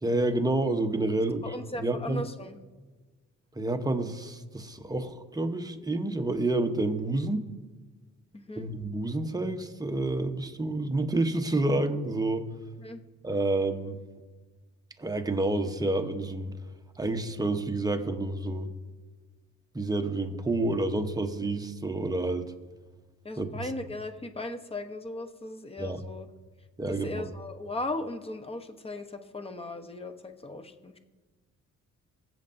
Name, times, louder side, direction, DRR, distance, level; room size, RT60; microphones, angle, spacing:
voice 1, 0.0-2.2 3.5-7.4 8.6-12.5 13.2-14.0 15.0-16.5 17.0-18.7 19.7-22.5 23.4-23.5 25.8-26.0 26.8-27.3, right 2 dB, 10° right, 5 dB, 0.9 m, -29 dB
voice 2, 1.4-2.6 8.3-8.7 12.8-13.0 23.2-26.3 26.9-31.0, left 2 dB, 20° left, 8 dB, 1.0 m, -37 dB
21.5 x 7.6 x 2.7 m, 1.3 s
cardioid pair, 90°, 30 cm